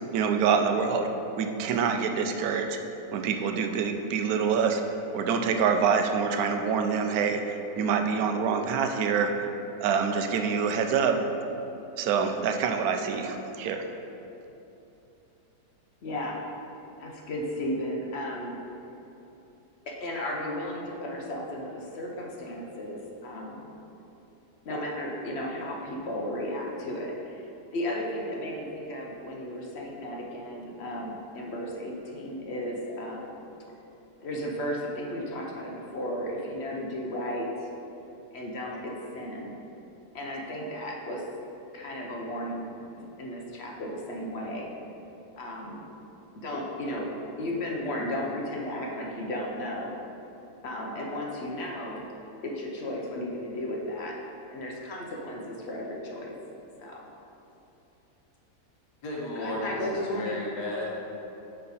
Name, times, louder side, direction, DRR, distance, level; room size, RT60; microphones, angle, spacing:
voice 1, 0.1-1.1 1.4-2.8 3.1-4.8 5.1-9.3 9.8-11.3 12.0-13.9, right 6 dB, 70° right, 6 dB, 1.0 m, -26 dB
voice 2, 16.0-16.5 17.0-18.6 19.9-23.7 24.6-33.4 34.2-37.7 38.3-39.5 40.1-41.3 41.7-44.7 45.4-45.9 46.3-47.1 47.4-49.9 50.6-52.0 52.4-54.2 54.5-56.3 56.8-57.1 59.4-60.5, left 1 dB, 50° left, -1 dB, 0.8 m, -34 dB
voice 3, 59.0-59.8 60.1-60.9, left 2 dB, 80° left, -3 dB, 1.7 m, -33 dB
6.5 x 5.5 x 4.0 m, 3.0 s
omnidirectional pair, 1.8 m